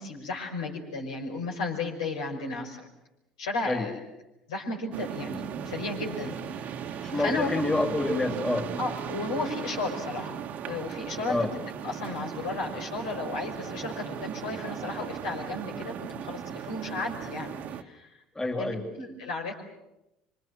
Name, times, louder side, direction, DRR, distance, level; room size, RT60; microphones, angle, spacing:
voice 1, 0.0-2.9 3.4-4.0 4.5-7.5 8.8-10.4 10.7-11.5 11.8-18.2 18.5-19.6, left 3 dB, 75° left, 1 dB, 5.5 m, -34 dB
sound 1, 4.9-17.8, right 8 dB, 50° right, 1.6 m, -37 dB
voice 2, 7.0-8.7 11.3-11.5 18.3-18.8, left 2 dB, 15° left, 4 dB, 3.2 m, -28 dB
26.5 x 25.0 x 7.6 m, 0.90 s
figure-of-eight pair, 65°, 4 cm